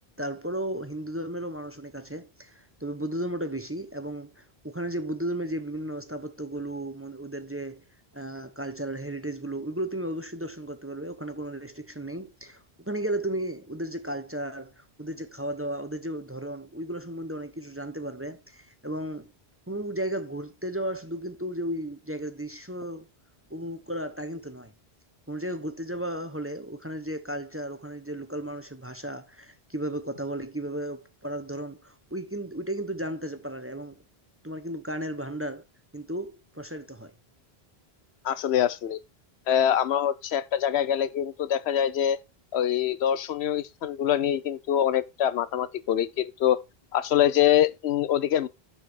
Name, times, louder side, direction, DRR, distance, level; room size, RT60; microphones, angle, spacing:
voice 1, 0.2-7.8 8.1-19.3 19.7-23.1 23.5-24.7 25.3-33.9 34.4-35.6 35.9-37.1, right 1 dB, 15° right, 0.8 m, -34 dB
voice 2, 38.2-39.0 39.5-42.2 42.5-46.6 46.9-48.5, left 10 dB, 90° left, 1.0 m, -24 dB
7.0 x 7.0 x 4.4 m
omnidirectional pair, 1.0 m